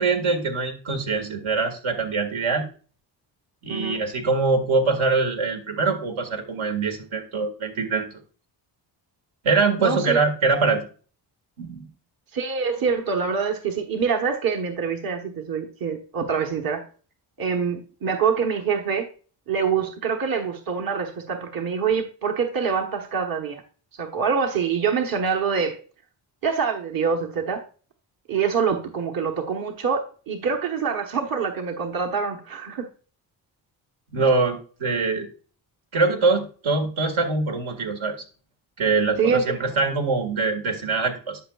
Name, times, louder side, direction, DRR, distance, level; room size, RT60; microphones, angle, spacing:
voice 1, 0.0-2.6 3.6-8.2 9.4-10.9 11.6-11.9 34.1-35.3 35.9-38.2 38.8-41.4, right 4 dB, 75° right, 3 dB, 2.0 m, -23 dB
voice 2, 3.7-4.0 9.8-10.2 12.3-16.9 17.4-19.1 19.5-23.6 24.0-25.8 26.4-27.6 28.3-32.9 39.2-39.4, right 6 dB, 50° right, 3 dB, 1.3 m, -25 dB
11.0 x 5.6 x 2.4 m, 0.39 s
supercardioid pair, 60°, 46 cm